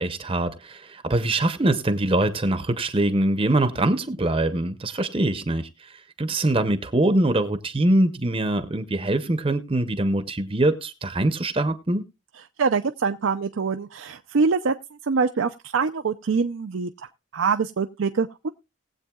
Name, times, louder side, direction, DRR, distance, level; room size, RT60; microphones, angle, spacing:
voice 1, 0.0-12.0, right 1 dB, 25° right, 0.7 m, -23 dB
voice 2, 12.6-14.7 15.0-16.9 17.3-18.5, right 5 dB, 70° right, 0.5 m, -24 dB
20.5 x 8.0 x 2.3 m
head